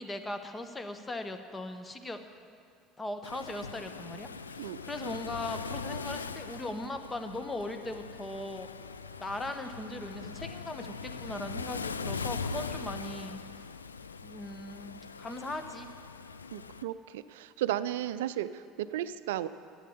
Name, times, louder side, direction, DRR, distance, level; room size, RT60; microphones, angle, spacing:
voice 1, 0.0-2.2 3.0-8.7 9.2-13.4 14.2-15.9, left 2 dB, 20° left, 7 dB, 1.1 m, -39 dB
Waves surf, 3.2-16.8, left 5 dB, 90° left, 0.3 m, -41 dB
voice 2, 16.5-19.5, right 12 dB, 70° right, 14 dB, 0.4 m, -34 dB
11.5 x 8.6 x 8.6 m, 2.3 s
figure-of-eight pair, 65°, 0 cm